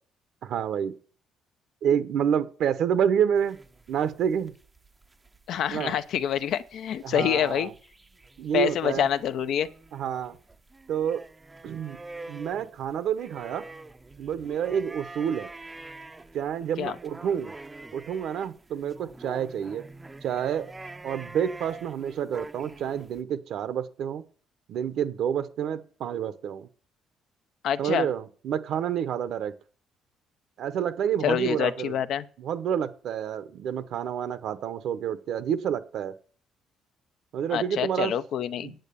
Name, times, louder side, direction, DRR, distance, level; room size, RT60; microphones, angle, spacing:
voice 1, 0.4-0.9 1.8-3.6 3.9-4.5 5.7-6.0 7.0-7.7 8.4-9.1 9.9-10.4 10.9-11.2 11.6-12.0 12.3-13.6 14.2-15.5 16.3-17.5 17.9-19.8 20.2-20.7 21.0-24.2 24.7-26.7 27.8-29.5 30.6-32.0 32.4-36.1 37.3-38.1 38.6-38.8, right 8 dB, 65° right, 0.9 m, -28 dB
sound 1, 3.3-23.2, right 2 dB, 15° right, 0.6 m, -46 dB
voice 2, 5.5-7.7 8.5-9.7 16.8-16.9 27.6-28.1 31.2-32.2 37.5-38.8, left 9 dB, 65° left, 0.7 m, -26 dB
9.0 x 8.3 x 6.9 m
cardioid pair, 145°, 0 cm